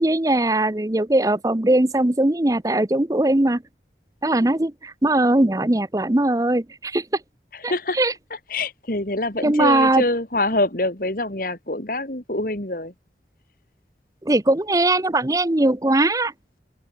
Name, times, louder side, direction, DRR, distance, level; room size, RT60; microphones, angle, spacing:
voice 1, 0.0-3.6 4.2-7.0 7.6-8.1 9.4-10.0 14.2-16.3, right 1 dB, 20° right, 0.7 m, -20 dB
voice 2, 7.5-8.0 8.5-12.9, left 2 dB, 50° left, 2.8 m, -25 dB
open air
head